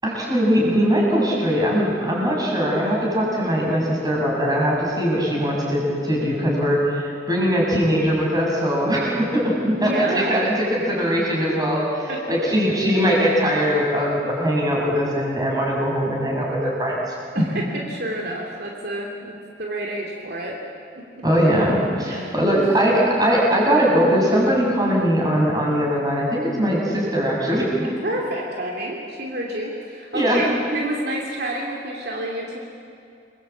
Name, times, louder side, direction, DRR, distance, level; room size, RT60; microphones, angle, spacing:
voice 1, 0.0-17.4 21.2-27.7 30.1-30.4, equal, 25° right, -3 dB, 6.9 m, -21 dB
voice 2, 9.7-10.5 12.1-12.4 12.9-13.0 17.3-20.6 21.0-21.3 22.1-22.7 24.9-25.2 27.8-32.6, right 1 dB, 65° right, -1 dB, 2.8 m, -29 dB
28.5 x 22.0 x 8.4 m, 2.5 s
head